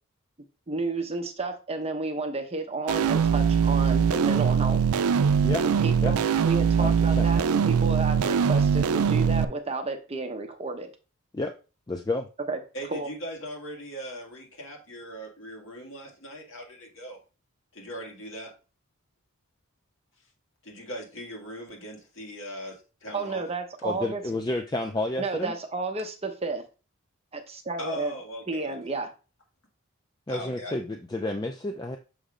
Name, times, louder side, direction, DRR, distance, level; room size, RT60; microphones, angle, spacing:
voice 1, 0.7-4.8 5.8-6.2 6.4-10.9 12.5-12.6 12.9-13.1 23.1-24.2 25.2-26.6 27.3-28.1 28.5-29.1, right 3 dB, 30° right, 6 dB, 0.7 m, -31 dB
sound 1, 2.9-9.4, right 6 dB, 90° right, 0.4 m, -22 dB
voice 2, 6.8-7.3 11.3-11.5 11.9-12.3 23.8-25.5 30.3-32.0, left 2 dB, 20° left, 5 dB, 0.4 m, -30 dB
voice 3, 12.7-17.2 17.7-18.5 20.6-23.4 27.8-28.9 30.3-30.8, equal, 60° left, 1 dB, 1.9 m, -39 dB
6.6 x 3.0 x 5.0 m, 0.33 s
head